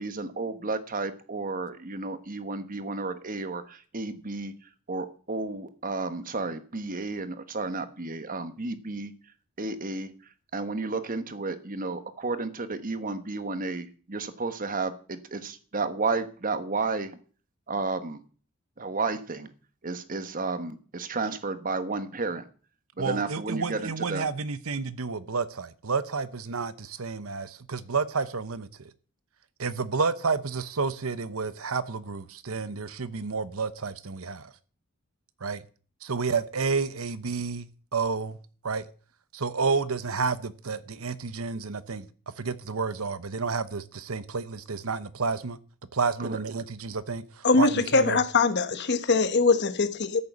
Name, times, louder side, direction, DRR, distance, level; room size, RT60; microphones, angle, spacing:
voice 1, 0.0-4.5 4.9-9.1 9.6-10.1 10.5-17.2 17.7-18.2 18.8-19.5 19.8-22.4 23.0-24.3 46.2-46.4, right 3 dB, 40° right, 1.2 m, -32 dB
voice 2, 23.0-28.7 29.6-34.5 35.4-35.6 36.0-38.4 38.6-38.8 39.3-42.1 42.4-45.6 45.9-48.2, right 4 dB, 75° right, 0.9 m, -30 dB
voice 3, 47.4-50.2, left 4 dB, 50° left, 1.1 m, -22 dB
14.0 x 6.8 x 8.1 m
head